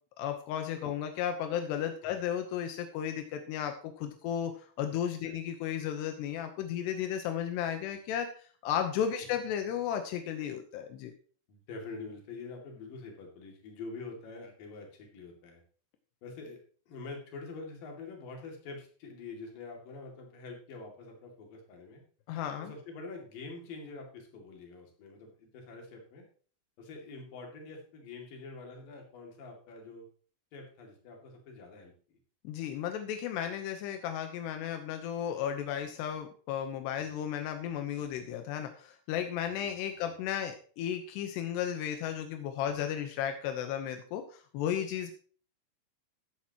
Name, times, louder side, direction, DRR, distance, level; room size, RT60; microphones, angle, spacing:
voice 1, 0.2-8.3 8.6-11.1 22.3-22.7 32.4-45.1, left 9 dB, 85° left, 6 dB, 3.1 m, -34 dB
voice 2, 11.5-15.6 16.2-16.6 16.9-22.0 22.6-26.3 26.8-30.1 30.5-32.2 39.5-40.2, left 3 dB, 60° left, 1 dB, 4.0 m, -46 dB
14.0 x 10.5 x 3.0 m, 0.43 s
omnidirectional pair, 4.8 m